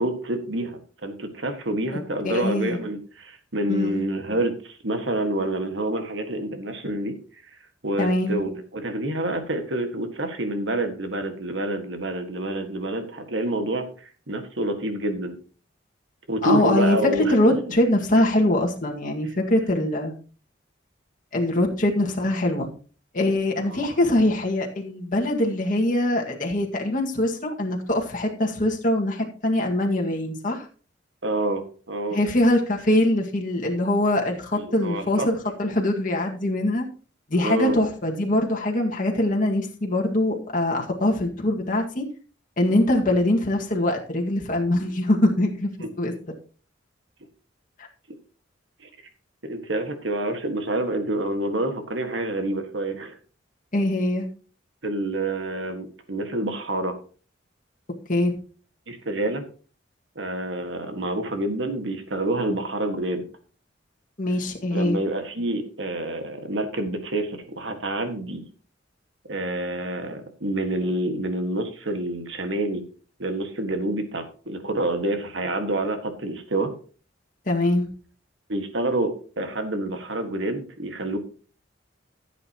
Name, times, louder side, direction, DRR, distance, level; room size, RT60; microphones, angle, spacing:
voice 1, 0.0-7.2 7.8-15.4 16.3-17.3 23.7-23.9 31.2-31.6 31.9-32.2 34.8-35.3 37.3-37.8 48.8-48.9 49.4-53.2 54.8-56.9 58.9-59.4 60.2-63.2 64.7-68.4 69.3-72.8 73.2-76.7 78.5-81.2, right 1 dB, 75° right, 6 dB, 1.8 m, -27 dB
voice 2, 2.2-2.8 3.7-4.0 8.0-8.3 16.4-17.0 17.3-20.1 21.3-22.7 23.1-30.7 32.1-36.8 37.3-42.0 42.6-45.7 46.0-46.1 53.7-54.3 58.1-58.3 64.2-65.0 77.5-77.9, left 1 dB, 45° left, 0 dB, 1.9 m, -23 dB
15.0 x 8.2 x 3.0 m, 0.38 s
head